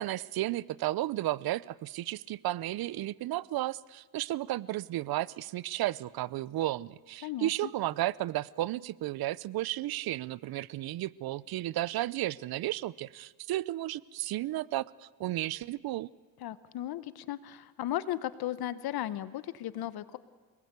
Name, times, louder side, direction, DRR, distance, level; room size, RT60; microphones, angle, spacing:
voice 1, 0.0-16.1, right 15 dB, 60° right, 21 dB, 0.7 m, -33 dB
voice 2, 7.2-7.7 16.4-20.2, left 13 dB, 65° left, 15 dB, 1.1 m, -36 dB
28.5 x 19.5 x 8.2 m, 1.4 s
cardioid pair, 95°, 40 cm